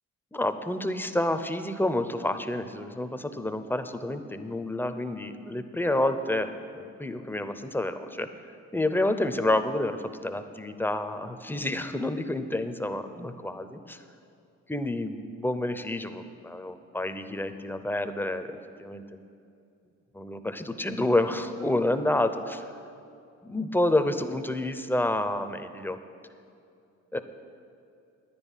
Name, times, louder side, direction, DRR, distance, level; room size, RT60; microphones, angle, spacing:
voice 1, 0.3-8.3 8.7-14.0 14.7-19.2 20.1-22.7 23.4-26.0 27.1-27.2, left 1 dB, 5° left, 9 dB, 0.6 m, -29 dB
10.0 x 9.9 x 5.6 m, 2.5 s
cardioid pair, 90°, 30 cm